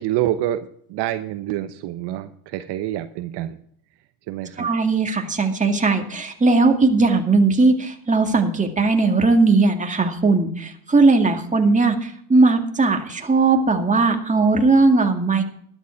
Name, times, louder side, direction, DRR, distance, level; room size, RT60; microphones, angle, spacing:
voice 1, 0.0-3.6 4.3-4.7, right 13 dB, 60° right, 9 dB, 1.0 m, -27 dB
voice 2, 4.6-15.4, right 3 dB, 15° right, 3 dB, 2.2 m, -18 dB
12.5 x 10.5 x 4.6 m, 0.65 s
supercardioid pair, 85°, 45 cm